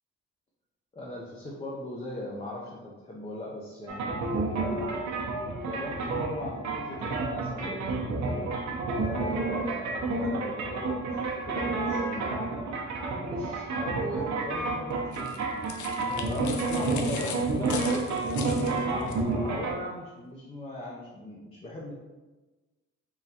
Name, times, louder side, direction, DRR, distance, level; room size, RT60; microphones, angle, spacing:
voice 1, 0.9-5.0 5.6-8.6 8.9-12.5 13.2-15.4 16.3-21.9, left 1 dB, 20° left, -3 dB, 0.6 m, -39 dB
sound 1, 3.9-19.7, right 3 dB, 65° right, 0.8 m, -30 dB
sound 2, 15.1-19.2, left 6 dB, 75° left, 0.5 m, -39 dB
3.7 x 3.1 x 2.8 m, 1.2 s
cardioid pair, 90°, 30 cm